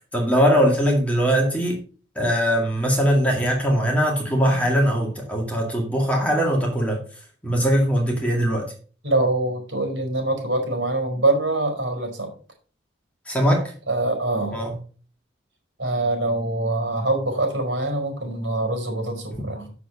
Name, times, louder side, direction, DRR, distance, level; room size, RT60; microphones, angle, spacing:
voice 1, 0.1-1.8 2.2-7.0 7.4-8.7 13.3-13.6 14.5-14.7, equal, 5° left, -1 dB, 2.2 m, -21 dB
voice 2, 9.0-12.3 13.9-14.6 15.8-19.7, right 2 dB, 75° right, 2 dB, 4.5 m, -24 dB
7.5 x 7.0 x 5.5 m, 0.40 s
head